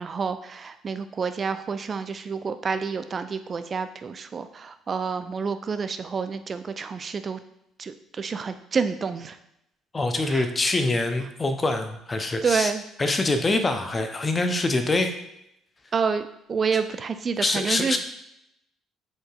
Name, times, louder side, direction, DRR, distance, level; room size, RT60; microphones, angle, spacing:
voice 1, 0.0-7.4 7.8-9.4 10.3-10.5 12.4-12.8 15.9-18.0, right 5 dB, 40° right, 10 dB, 0.3 m, -28 dB
voice 2, 9.9-12.7 13.0-15.1 17.4-18.0, left 2 dB, 25° left, 8 dB, 0.6 m, -24 dB
5.1 x 3.8 x 2.4 m, 0.80 s
figure-of-eight pair, 50°, 0 cm